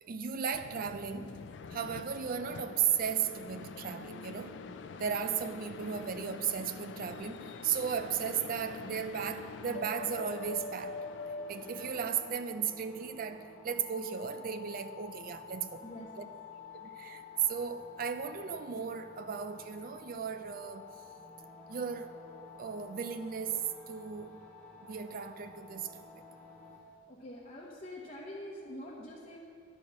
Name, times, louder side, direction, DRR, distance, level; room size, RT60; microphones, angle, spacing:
voice 1, 0.0-1.4 1.7-4.6 5.0-11.1 11.5-15.8 16.7-20.9 21.7-22.2 22.6-24.4 24.8-26.0, right 7 dB, 50° right, 0.4 m, -35 dB
sound 1, 0.5-12.1, left 4 dB, 70° left, 0.4 m, -45 dB
sound 2, 9.5-26.8, left 5 dB, 10° left, 1.4 m, -52 dB
voice 2, 15.8-16.3 27.1-29.4, left 1 dB, 35° left, 0.9 m, -45 dB
11.0 x 4.4 x 6.1 m
head